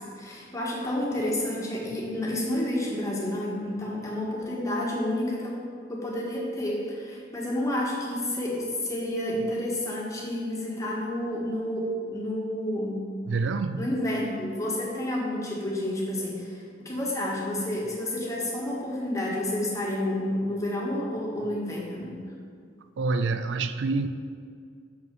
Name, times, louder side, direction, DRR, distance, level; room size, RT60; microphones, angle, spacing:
voice 1, 0.0-5.6 5.9-13.0 13.8-22.2, left 1 dB, 20° left, -4 dB, 1.7 m, -30 dB
voice 2, 13.3-13.9 23.0-24.1, right 3 dB, 75° right, 10 dB, 0.4 m, -27 dB
7.4 x 6.0 x 5.5 m, 2.2 s
head